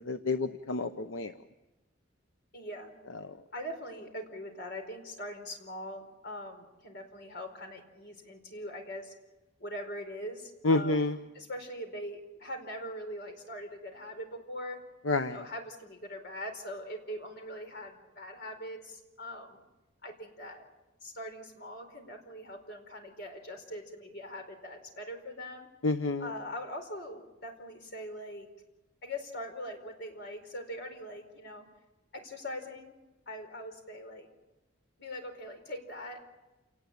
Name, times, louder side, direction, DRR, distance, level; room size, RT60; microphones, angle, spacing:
voice 1, 0.0-1.3 3.2-3.3 10.6-11.2 15.0-15.4 25.8-26.3, left 3 dB, 85° left, 8 dB, 0.9 m, -29 dB
voice 2, 2.5-2.9 3.5-9.1 9.6-11.0 11.3-14.8 15.1-19.6 20.0-20.6 21.0-25.7 26.2-28.5 29.0-31.7 32.1-32.9 33.3-34.3 35.0-36.2, equal, 60° left, 5 dB, 4.5 m, -42 dB
28.0 x 19.0 x 8.6 m, 1.1 s
head